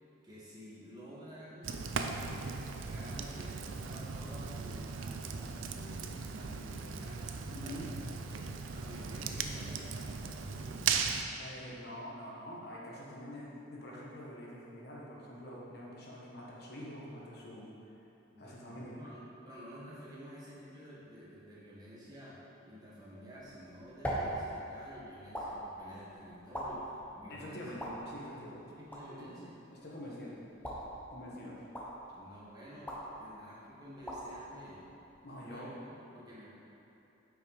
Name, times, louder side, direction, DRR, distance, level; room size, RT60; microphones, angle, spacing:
voice 1, 0.2-1.7 2.1-8.0 8.3-10.9 18.3-19.2 19.4-27.7 28.4-29.5 32.1-32.9 33.2-34.9 35.4-36.5, equal, 20° right, -8 dB, 1.8 m, -51 dB
Fire, 1.6-11.2, right 5 dB, 70° right, 0.5 m, -38 dB
voice 2, 7.5-7.9 11.4-17.7 18.4-19.0 27.3-28.7 29.1-29.4 29.8-30.4 31.1-31.6 35.2-35.8, equal, 55° left, -4 dB, 1.4 m, -46 dB
sound 1, 23.4-35.5, equal, 10° left, 1.1 m, -43 dB
8.6 x 5.9 x 4.9 m, 2.9 s
head